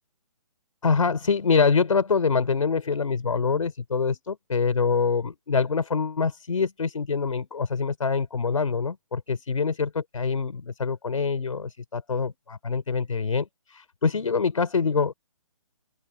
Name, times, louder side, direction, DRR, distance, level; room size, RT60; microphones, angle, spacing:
voice 1, 0.8-15.1, left 5 dB, 70° left, 4.1 m, -25 dB
open air
figure-of-eight pair, 140°, 18 cm